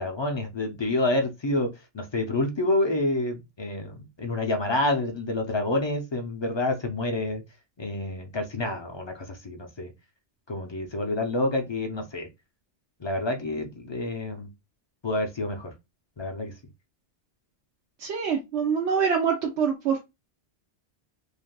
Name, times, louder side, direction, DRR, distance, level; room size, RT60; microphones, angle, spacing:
voice 1, 0.0-7.4 7.8-9.9 10.5-12.3 13.0-14.5 15.0-15.7 16.2-16.5, left 2 dB, 40° left, 0.4 m, -28 dB
voice 2, 18.0-20.0, right 6 dB, 80° right, 1.0 m, -25 dB
3.3 x 2.4 x 2.2 m
omnidirectional pair, 1.2 m